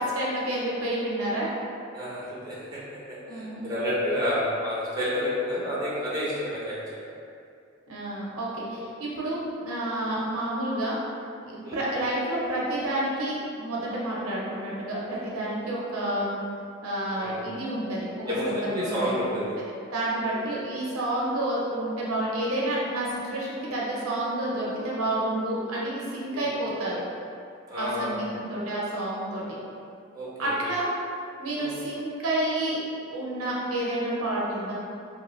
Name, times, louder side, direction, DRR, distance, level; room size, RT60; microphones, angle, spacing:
voice 1, 0.0-1.5 3.3-3.8 7.9-11.0 11.4-16.4 16.8-19.6 19.9-27.0 27.8-29.4 30.4-30.9 31.4-32.8 33.1-34.8, right 1 dB, 90° right, -5 dB, 0.7 m, -29 dB
voice 2, 1.9-2.8 3.3-7.0 11.6-11.8 17.1-17.4 18.3-19.5 20.3-20.4 26.3-26.4 27.7-28.1 30.1-30.5 31.6-31.7, left 1 dB, 20° right, -8 dB, 0.6 m, -29 dB
2.9 x 2.3 x 3.0 m, 2.5 s
head